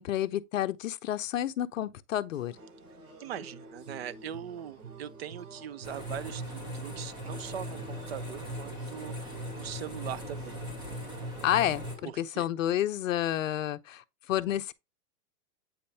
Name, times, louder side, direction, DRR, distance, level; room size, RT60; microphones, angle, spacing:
voice 1, 0.0-2.5 11.4-14.7, left 12 dB, 55° left, 0.8 m, -30 dB
sound 1, 2.3-12.1, right 3 dB, 65° right, 5.3 m, -49 dB
voice 2, 3.2-10.6 12.3-12.5, right 9 dB, 45° right, 0.6 m, -41 dB
sound 2, 5.8-12.0, equal, 10° right, 1.1 m, -39 dB
8.8 x 5.2 x 2.8 m
hypercardioid pair, 165°, 46 cm